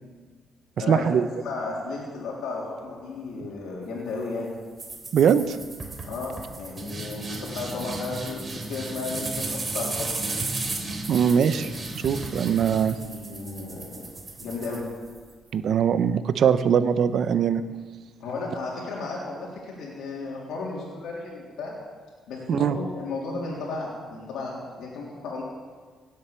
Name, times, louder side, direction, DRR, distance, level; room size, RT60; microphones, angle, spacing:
voice 1, 0.9-1.3 5.1-5.6 11.1-13.0 15.5-17.6 22.5-22.8, right 8 dB, 65° right, 12 dB, 0.8 m, -22 dB
voice 2, 1.4-4.5 6.0-10.2 12.8-14.1 14.4-14.8 18.2-21.8 22.3-25.4, left 3 dB, 80° left, -4 dB, 3.4 m, -34 dB
sound 1, 4.8-15.3, right 2 dB, 30° right, 3.3 m, -34 dB
17.0 x 7.8 x 7.1 m, 1.5 s
cardioid pair, 90°, 0 cm